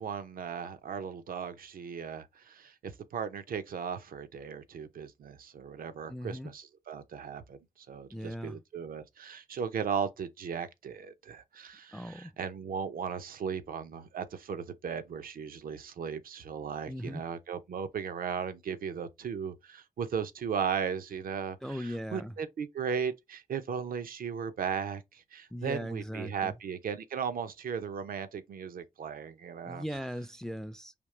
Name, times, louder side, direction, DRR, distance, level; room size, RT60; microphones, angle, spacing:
voice 1, 0.0-7.6 7.9-29.8, right 7 dB, 90° right, 0.6 m, -36 dB
voice 2, 6.1-6.5 8.1-8.6 11.9-12.3 16.9-17.2 21.6-22.4 25.5-26.5 29.6-30.9, equal, 5° left, 0.4 m, -39 dB
5.1 x 2.8 x 3.1 m
cardioid pair, 55°, 14 cm